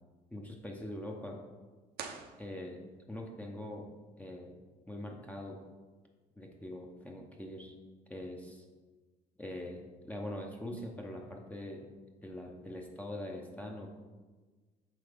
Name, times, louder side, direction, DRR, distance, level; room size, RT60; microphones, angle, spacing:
voice 1, 0.3-1.4 2.4-2.8 3.1-3.9 4.2-4.6 4.9-5.6 6.4-7.7 8.1-8.6 9.4-11.9 12.2-13.9, left 1 dB, 10° left, 0 dB, 0.7 m, -43 dB
sound 1, 1.9-3.1, right 6 dB, 70° right, 0.7 m, -46 dB
7.5 x 4.6 x 3.5 m, 1.3 s
cardioid pair, 110°, 17 cm